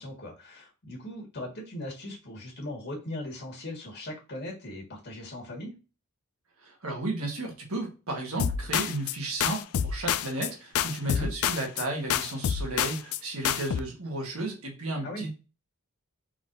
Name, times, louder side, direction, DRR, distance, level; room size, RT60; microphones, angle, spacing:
voice 1, 0.0-5.7 11.0-11.3 15.0-15.3, left 1 dB, 50° left, -2 dB, 1.8 m, -39 dB
voice 2, 6.6-15.3, right 2 dB, 70° right, 1 dB, 1.5 m, -33 dB
sound 1, 8.4-9.2 9.4-10.5 10.8-11.8 12.1-13.2 13.4-13.8, left 9 dB, 75° left, 0.3 m, -28 dB
4.6 x 3.8 x 2.6 m, 0.31 s
head